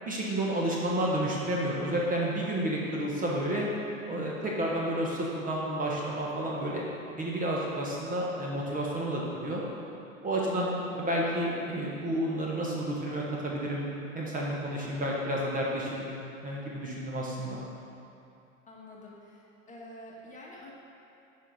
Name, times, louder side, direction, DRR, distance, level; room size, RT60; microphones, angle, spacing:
voice 1, 0.0-3.7 4.1-6.8 7.2-9.6 10.2-13.9 14.1-16.1 16.4-17.6, right 1 dB, 20° right, -4 dB, 1.3 m, -30 dB
voice 2, 18.7-20.7, left 1 dB, 20° left, -4 dB, 1.6 m, -48 dB
9.8 x 4.7 x 5.3 m, 2.6 s
hypercardioid pair, 95°, 40 cm